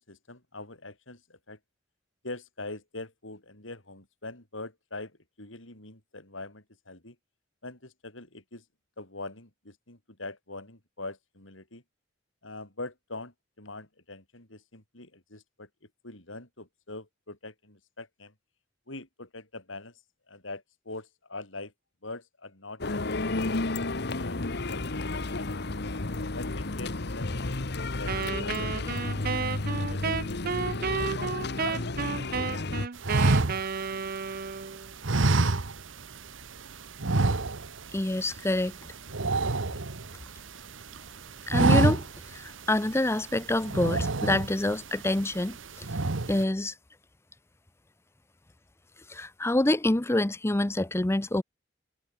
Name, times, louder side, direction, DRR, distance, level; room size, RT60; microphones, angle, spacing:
voice 1, 0.1-1.6 2.2-5.1 5.4-7.1 7.6-8.6 9.0-11.8 12.4-15.7 16.0-18.3 18.9-19.9 20.3-21.7 22.0-24.8 25.4-25.6 26.3-29.3 29.6-30.4 30.9-31.3, left 2 dB, 85° left, 6.3 m, -43 dB
sound 1, 22.8-32.9, left 2 dB, 60° left, 1.3 m, -32 dB
Wind instrument woodwind instrument, 28.1-34.9, right 5 dB, 50° right, 0.7 m, -32 dB
sound 2, 33.0-34.5 35.0-36.1 36.4-36.6 37.0-37.9 38.2-38.4 38.7-40.4 40.8-41.1 41.4-42.3 42.8-42.9 43.6-44.8 45.2-45.6 45.8-46.4, right 2 dB, 80° right, 1.3 m, -26 dB
voice 2, 37.9-38.7 41.5-42.0 42.3-45.6 46.3-46.7 49.1-51.4, left 1 dB, 15° left, 0.6 m, -26 dB
head